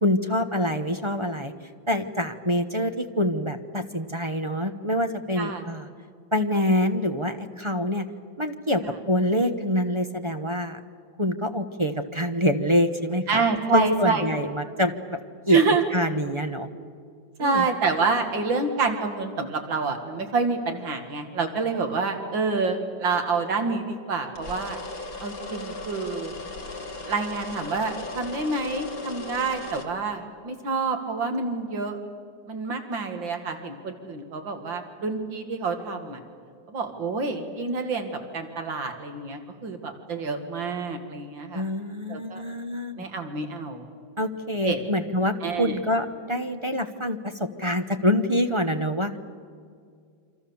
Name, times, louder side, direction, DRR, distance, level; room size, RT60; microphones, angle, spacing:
voice 1, 0.0-1.5 1.9-5.9 6.3-8.1 8.4-8.8 9.1-10.8 11.2-13.4 13.7-15.2 15.5-15.6 15.9-16.7 17.4-17.7 41.5-43.0 44.2-49.1, left 1 dB, 25° right, 6 dB, 0.7 m, -25 dB
voice 2, 13.3-14.2 15.5-15.8 17.4-24.8 25.2-26.3 27.1-32.0 32.5-36.2 36.7-41.7 42.1-42.4 43.0-43.9 44.6-44.8 45.4-45.8, right 4 dB, 75° right, 5 dB, 2.6 m, -27 dB
sound 1, 24.4-29.8, left 2 dB, 50° left, 2.5 m, -37 dB
27.5 x 26.0 x 7.1 m, 2.2 s
omnidirectional pair, 2.1 m